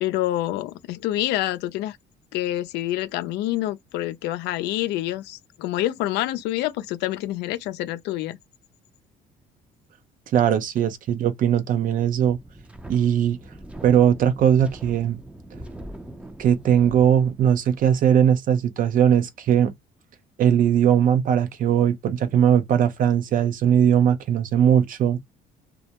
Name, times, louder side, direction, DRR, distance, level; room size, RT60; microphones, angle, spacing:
voice 1, 0.0-2.0 2.3-8.4, left 15 dB, 85° left, 0.4 m, -27 dB
voice 2, 10.3-12.4 12.9-13.4 13.8-15.2 16.4-19.7 20.4-25.2, right 9 dB, 55° right, 0.6 m, -19 dB
Wind, 12.3-17.9, right 1 dB, 5° right, 0.5 m, -42 dB
2.3 x 2.1 x 2.8 m
cardioid pair, 110°, 17 cm